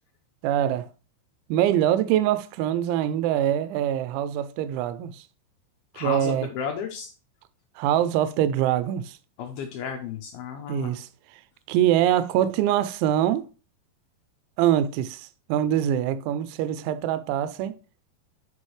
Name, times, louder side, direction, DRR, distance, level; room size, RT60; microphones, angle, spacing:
voice 1, 0.4-0.9 1.5-5.2 6.0-6.5 7.8-9.2 10.7-11.4 11.7-13.5 14.6-17.7, right 11 dB, 85° right, 2.9 m, -24 dB
voice 2, 5.9-7.1 9.4-10.9, left 7 dB, 80° left, 2.2 m, -33 dB
9.6 x 5.2 x 3.2 m
omnidirectional pair, 5.4 m